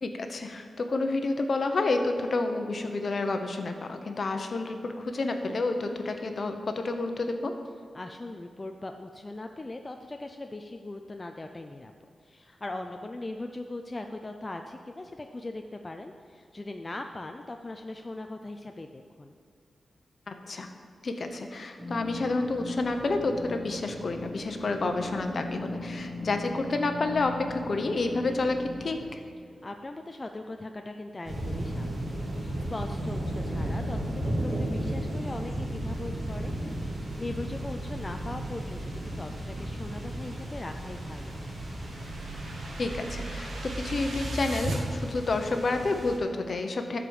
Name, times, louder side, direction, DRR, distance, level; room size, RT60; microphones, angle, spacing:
voice 1, 0.0-7.5 20.3-20.7 21.0-29.2 42.8-47.0, left 3 dB, 50° left, 6 dB, 0.9 m, -29 dB
voice 2, 7.9-11.9 12.2-19.3 29.6-32.0 32.3-36.9 37.2-41.4, left 2 dB, 25° left, 4 dB, 0.5 m, -40 dB
sound 1, 21.8-29.1, left 1 dB, 10° right, 2.6 m, -39 dB
sound 2, 31.2-46.2, right 1 dB, 45° right, 2.6 m, -34 dB
sound 3, 40.9-44.8, right 1 dB, 80° right, 1.9 m, -37 dB
12.5 x 5.0 x 7.1 m, 2.3 s
wide cardioid pair, 105°, 0 cm